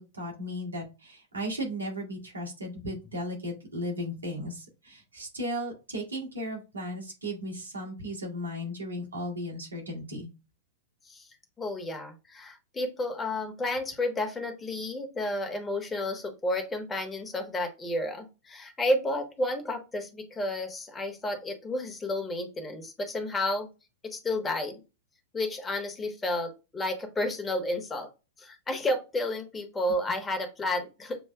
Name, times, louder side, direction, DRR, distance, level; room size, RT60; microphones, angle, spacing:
voice 1, 0.0-10.3, equal, 80° right, -2 dB, 1.9 m, -36 dB
voice 2, 11.6-23.7 24.0-24.8 25.3-28.1 28.4-31.3, left 1 dB, 15° left, 4 dB, 1.1 m, -31 dB
7.1 x 3.0 x 2.2 m, 0.29 s
figure-of-eight pair, 95°, 0 cm